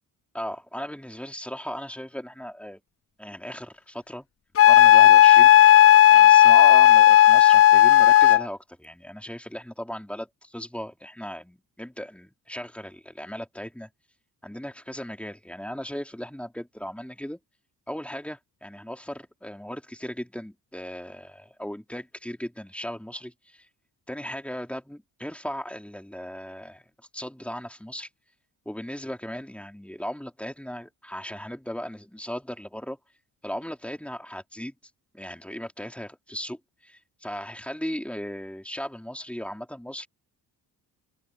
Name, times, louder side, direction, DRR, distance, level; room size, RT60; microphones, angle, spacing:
voice 1, 0.3-2.8 3.2-4.3 4.6-5.8 6.1-13.9 14.4-17.4 17.9-23.7 24.1-26.8 27.1-28.1 28.7-33.0 33.4-34.8 35.1-40.1, equal, 5° left, 3.8 m, -37 dB
Wind instrument woodwind instrument, 4.6-8.4, left 12 dB, 35° left, 0.5 m, -13 dB
cardioid pair, 95°, 39 cm